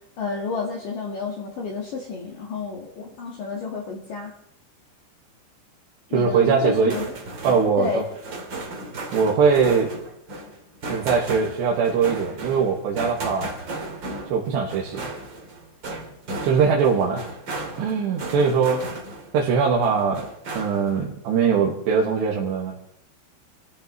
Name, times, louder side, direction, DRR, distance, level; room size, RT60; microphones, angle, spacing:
voice 1, 0.2-4.3 6.1-7.1 7.8-8.1, left 4 dB, 55° left, -2 dB, 2.9 m, -30 dB
voice 2, 6.1-6.9 7.4-7.9 9.1-9.9 10.9-13.5 14.3-15.0 16.4-17.3 17.8-18.9 19.3-22.7, right 6 dB, 70° right, -3 dB, 3.7 m, -21 dB
sound 1, 6.7-19.4 19.8-21.0, right 2 dB, 40° right, 1.7 m, -35 dB
28.5 x 14.0 x 3.1 m, 0.72 s
omnidirectional pair, 5.3 m